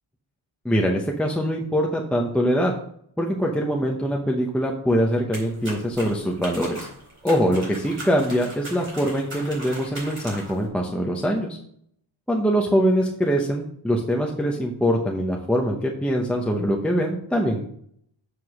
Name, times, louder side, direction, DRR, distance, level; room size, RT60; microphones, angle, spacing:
voice 1, 0.6-2.7 3.2-6.9 7.2-11.6 12.3-17.7, equal, ahead, 0 dB, 0.8 m, -23 dB
sound 1, 5.3-10.6, right 1 dB, 25° right, 4.2 m, -39 dB
7.6 x 4.9 x 6.2 m, 0.66 s
wide cardioid pair, 170°, 49 cm